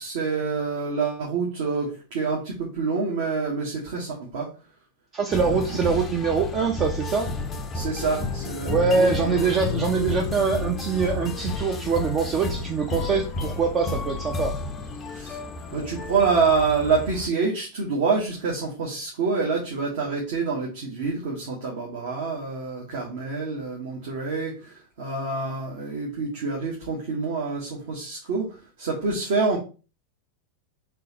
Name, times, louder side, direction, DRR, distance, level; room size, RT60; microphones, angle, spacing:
voice 1, 0.0-4.5 5.4-5.8 7.7-9.5 15.1-15.4 15.7-29.6, right 4 dB, 55° right, -3 dB, 1.1 m, -27 dB
voice 2, 5.1-7.3 8.7-14.5, right 5 dB, 30° right, 2 dB, 0.5 m, -24 dB
sound 1, 5.3-17.3, left 3 dB, 25° left, 0.5 m, -31 dB
3.8 x 3.1 x 2.8 m, 0.34 s
figure-of-eight pair, 90°, 0 cm